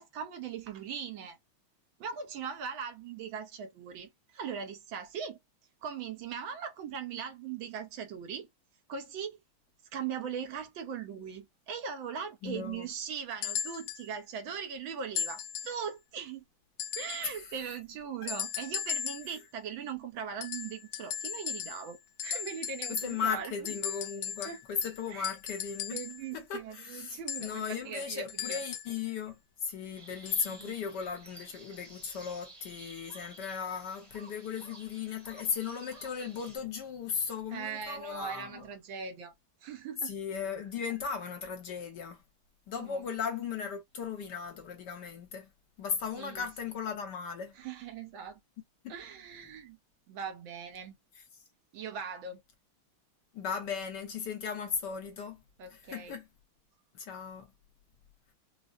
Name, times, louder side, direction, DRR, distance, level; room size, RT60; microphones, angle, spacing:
voice 1, 0.0-1.4 2.0-5.4 5.8-8.5 8.9-9.4 9.9-16.4 17.0-23.8 24.4-24.6 25.1-25.4 25.9-28.6 30.5-30.7 37.5-39.3 39.6-40.1 42.8-43.1 46.1-46.4 47.5-48.4 48.9-49.8 50.1-51.0 51.7-52.4 55.6-56.2, right 7 dB, 70° right, 1.5 m, -40 dB
voice 2, 12.4-12.9 17.2-17.3 18.2-18.3 22.9-26.0 26.3-29.3 29.6-38.6 40.0-42.2 42.7-45.5 45.8-47.5 48.8-48.9 53.3-55.4 55.9-56.2 56.9-57.5, left 6 dB, 65° left, 1.3 m, -36 dB
sound 1, 13.4-14.1 15.2-15.8 16.8-17.3 18.3-19.4 20.4-21.9 22.2-23.3 23.7-26.2 27.3-29.0 30.3-30.6 31.5-31.6, left 9 dB, 90° left, 1.5 m, -37 dB
sound 2, 29.9-36.6, right 2 dB, 25° right, 0.9 m, -53 dB
5.0 x 2.0 x 2.4 m
omnidirectional pair, 2.3 m